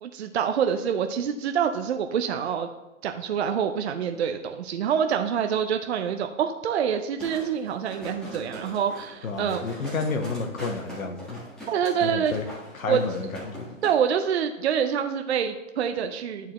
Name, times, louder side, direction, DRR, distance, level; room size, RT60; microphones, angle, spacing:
voice 1, 0.0-2.7 3.0-9.7 11.7-12.3 12.9-13.0 13.8-16.5, right 8 dB, 55° right, 6 dB, 0.6 m, -26 dB
sound 1, 7.2-13.9 14.3-14.4, equal, ahead, 1.4 m, -41 dB
voice 2, 9.2-11.4 12.0-12.4 12.7-13.7, left 4 dB, 90° left, 6 dB, 1.2 m, -31 dB
10.5 x 4.5 x 3.0 m, 1.0 s
hypercardioid pair, 150°, 40 cm